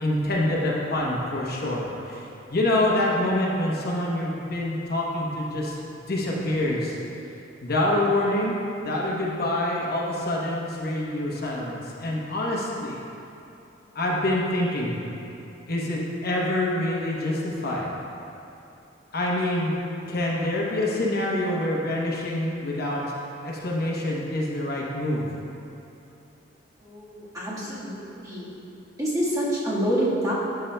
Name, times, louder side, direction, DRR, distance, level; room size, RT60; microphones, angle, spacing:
voice 1, 0.0-2.2 2.5-5.7 6.1-6.9 7.6-8.5 8.8-13.0 13.9-14.9 15.7-17.9 19.1-19.7 20.1-23.0 23.4-25.3, left 1 dB, 55° left, -3 dB, 0.9 m, -26 dB
voice 2, 26.8-28.5 28.9-30.3, equal, 20° right, -8 dB, 1.5 m, -27 dB
11.0 x 6.8 x 2.2 m, 2.8 s
head